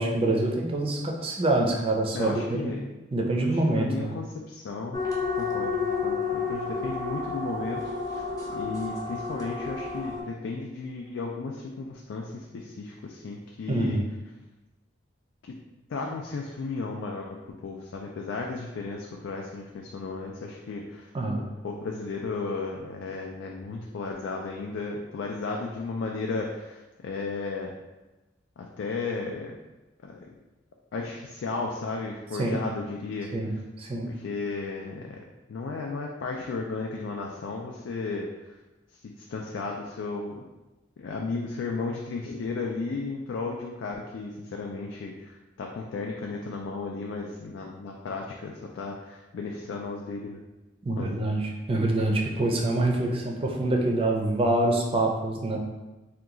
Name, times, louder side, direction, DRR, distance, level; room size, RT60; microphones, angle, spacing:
voice 1, 0.0-2.7 3.1-4.2 13.7-14.0 21.1-21.4 32.4-32.6 33.3-34.1 50.8-55.6, right 2 dB, 30° right, 0 dB, 0.4 m, -26 dB
voice 2, 2.1-2.8 3.4-5.0 5.4-8.2 8.5-14.0 15.5-15.6 15.9-17.4 17.6-21.1 21.4-27.7 28.6-29.6 30.0-30.3 30.9-33.3 34.1-35.2 35.5-38.6 39.2-40.5 41.0-50.4 51.0-51.3, left 3 dB, 85° left, -1 dB, 0.4 m, -34 dB
sound 1, 4.9-10.2, left 4 dB, 20° left, 0.6 m, -31 dB
2.8 x 2.3 x 3.7 m, 1.1 s
head